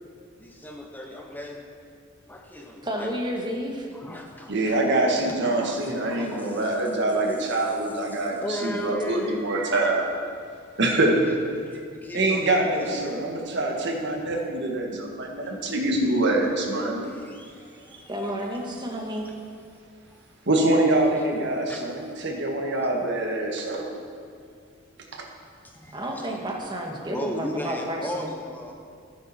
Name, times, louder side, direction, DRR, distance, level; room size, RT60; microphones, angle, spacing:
voice 1, 0.4-1.7 2.3-3.1 3.9-4.8 5.4-6.6 8.4-9.8 11.2-11.3 11.6-13.2 14.3-14.4 17.0-18.3 21.7-21.8 25.6-26.3 27.1-28.7, left 1 dB, 10° left, 2 dB, 0.8 m, -36 dB
voice 2, 2.8-3.9 18.1-19.3 25.9-28.3, equal, 20° right, 1 dB, 1.5 m, -31 dB
voice 3, 4.5-10.1 10.8-11.2 12.1-17.1 20.5-23.9, right 2 dB, 60° right, 1 dB, 1.6 m, -24 dB
15.5 x 9.6 x 4.3 m, 2.2 s
head